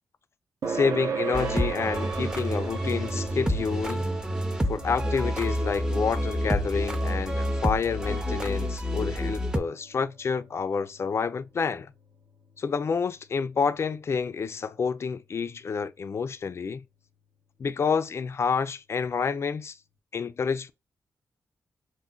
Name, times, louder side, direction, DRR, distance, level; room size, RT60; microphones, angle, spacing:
sound 1, 0.6-15.5, right 5 dB, 60° right, 0.5 m, -39 dB
voice 1, 0.7-4.1 4.6-11.9 12.6-16.8 17.6-19.8 20.1-20.7, left 5 dB, 45° left, 0.3 m, -29 dB
sound 2, 1.3-9.6, equal, 10° right, 0.5 m, -28 dB
3.8 x 2.0 x 2.3 m
cardioid pair, 70°, 6 cm